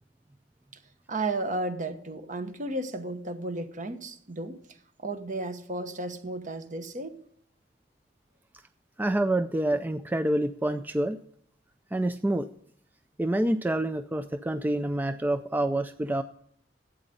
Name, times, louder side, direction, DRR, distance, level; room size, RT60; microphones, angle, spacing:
voice 1, 1.1-4.6 5.0-7.2, right 2 dB, 45° right, 1.1 m, -33 dB
voice 2, 9.0-11.2 11.9-12.5 13.2-16.2, right 1 dB, 10° right, 0.4 m, -27 dB
12.5 x 8.9 x 5.3 m
head